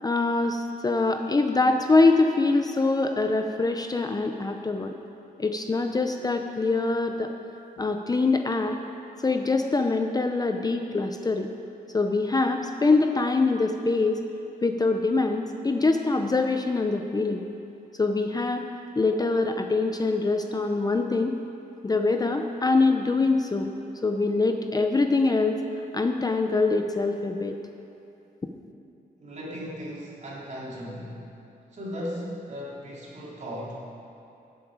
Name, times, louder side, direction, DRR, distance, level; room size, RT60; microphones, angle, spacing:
voice 1, 0.0-4.9 5.4-7.3 7.8-8.8 9.2-11.5 11.9-14.2 14.6-17.5 18.0-18.6 19.0-21.4 21.8-23.7 24.0-25.6 25.9-27.6, left 3 dB, 25° left, 5 dB, 0.6 m, -24 dB
voice 2, 29.2-31.3 31.7-33.8, equal, 45° right, -5 dB, 3.1 m, -37 dB
17.0 x 7.9 x 4.9 m, 2.8 s
cardioid pair, 100°, 16 cm